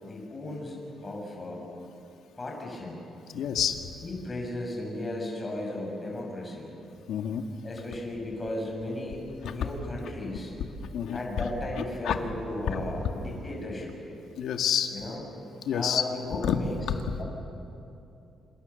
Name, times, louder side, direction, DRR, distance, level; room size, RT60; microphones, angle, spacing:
voice 1, 0.0-1.7 2.4-3.0 4.0-6.7 7.6-10.5 11.1-13.9 14.9-15.2 15.7-16.8 17.2-17.3, left 1 dB, 20° left, -1 dB, 6.7 m, -35 dB
voice 2, 3.3-3.8 7.1-7.4 10.9-11.5 12.1-12.2 12.7-12.8 14.4-14.9 15.7-16.0 16.4-16.6, left 9 dB, 75° left, 5 dB, 2.0 m, -28 dB
27.5 x 27.5 x 7.1 m, 2.8 s
cardioid pair, 155°, 0 cm